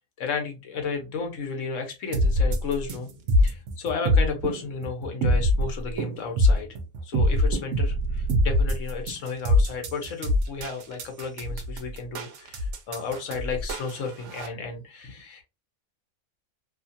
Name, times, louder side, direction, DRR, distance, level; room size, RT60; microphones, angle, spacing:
voice 1, 0.2-3.1 3.4-6.7 7.0-15.4, left 5 dB, 65° left, 4 dB, 1.1 m, -33 dB
sound 1, 2.1-14.5, left 1 dB, 65° right, 0.9 m, -24 dB
2.8 x 2.3 x 2.6 m, 0.26 s
omnidirectional pair, 1.5 m